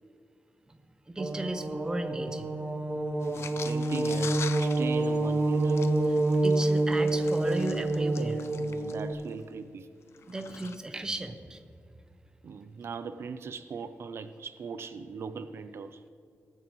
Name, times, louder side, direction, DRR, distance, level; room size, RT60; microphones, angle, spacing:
voice 1, 1.1-2.5 6.1-8.4 10.3-11.6, right 2 dB, 15° right, 8 dB, 0.6 m, -35 dB
sound 1, 1.2-9.1, right 2 dB, 35° right, 0.9 m, -27 dB
sound 2, 3.2-9.4 10.1-10.8, left 6 dB, 70° left, 0.5 m, -44 dB
voice 2, 3.4-5.8 8.6-9.9 12.4-16.0, right 5 dB, 65° right, 11 dB, 0.4 m, -40 dB
19.0 x 9.0 x 3.1 m, 2.3 s
wide cardioid pair, 180°, 5 cm